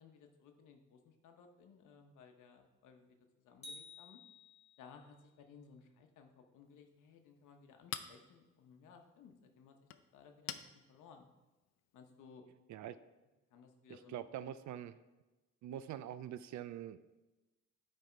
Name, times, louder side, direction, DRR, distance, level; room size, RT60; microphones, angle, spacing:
voice 1, 0.0-4.2 4.8-9.8 10.1-11.3 11.9-12.4 13.5-14.2, left 6 dB, 85° left, 5 dB, 0.9 m, -60 dB
sound 1, 3.6-5.0, left 2 dB, 25° left, 2.1 m, -53 dB
Chink clink, 6.6-12.2, left 10 dB, 60° left, 0.5 m, -51 dB
voice 2, 14.1-15.0 15.6-17.0, right 10 dB, 70° right, 14 dB, 0.5 m, -44 dB
9.2 x 3.5 x 4.4 m, 1.1 s
cardioid pair, 90°, 30 cm